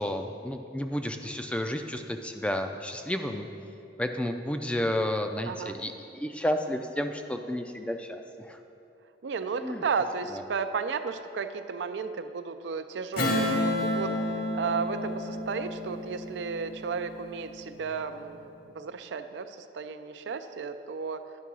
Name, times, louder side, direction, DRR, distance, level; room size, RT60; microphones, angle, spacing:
voice 1, 0.0-3.5 4.0-8.6 9.6-9.8 10.3-10.4, left 1 dB, 5° left, 6 dB, 0.3 m, -31 dB
voice 2, 9.2-14.1 14.5-21.2, right 5 dB, 80° right, 9 dB, 0.4 m, -33 dB
Strum, 13.2-18.1, left 1 dB, 55° left, 1.1 m, -31 dB
10.5 x 3.7 x 6.1 m, 2.7 s
head